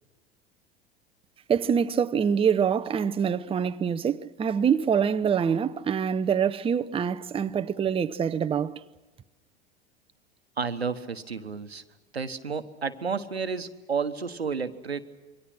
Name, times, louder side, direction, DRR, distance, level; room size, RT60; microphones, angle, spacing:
voice 1, 1.5-8.8, right 7 dB, 20° right, 0.8 m, -25 dB
voice 2, 10.6-11.8 12.1-15.0, right 5 dB, 90° right, 1.2 m, -31 dB
27.5 x 24.0 x 6.2 m
figure-of-eight pair, 80°, 31 cm